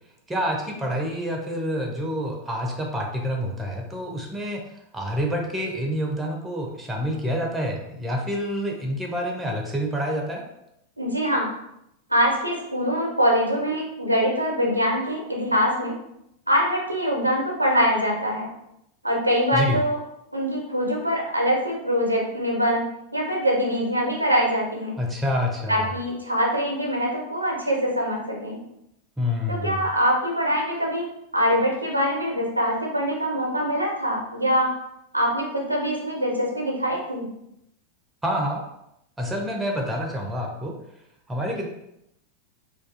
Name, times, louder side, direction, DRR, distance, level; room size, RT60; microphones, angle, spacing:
voice 1, 0.3-4.6 4.9-10.5 19.5-19.8 25.0-25.9 29.2-29.8 38.2-38.6 39.2-40.8 41.3-41.7, equal, 10° right, 0 dB, 0.4 m, -27 dB
voice 2, 11.0-11.5 12.1-15.9 16.5-18.5 19.0-20.0 20.3-24.9 25.7-28.6 29.5-31.1 31.3-34.7 35.1-37.3, equal, 85° right, -1 dB, 0.5 m, -23 dB
2.4 x 2.3 x 2.5 m, 0.81 s
figure-of-eight pair, 90°, 0 cm